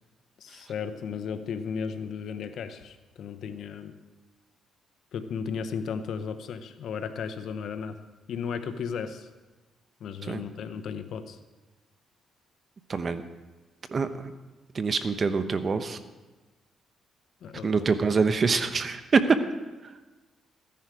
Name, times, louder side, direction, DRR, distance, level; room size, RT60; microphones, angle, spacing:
voice 1, 0.4-3.9 5.1-8.0 8.3-9.3 10.0-11.4 17.4-17.7, left 6 dB, 70° left, 10 dB, 0.9 m, -35 dB
voice 2, 12.9-13.2 13.9-14.3 14.7-16.0 17.6-19.4, right 4 dB, 40° right, 10 dB, 0.9 m, -25 dB
14.5 x 10.5 x 4.9 m, 1.2 s
cardioid pair, 90°, 0 cm